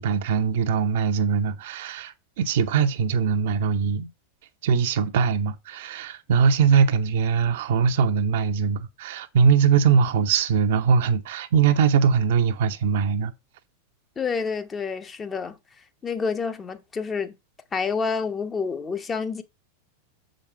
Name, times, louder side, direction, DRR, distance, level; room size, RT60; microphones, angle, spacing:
voice 1, 0.0-4.1 4.6-13.3, right 6 dB, 55° right, 0.8 m, -21 dB
voice 2, 14.2-15.6 16.0-17.4 17.7-19.4, left 5 dB, 20° left, 0.9 m, -28 dB
7.2 x 5.3 x 4.5 m
figure-of-eight pair, 90°, 0 cm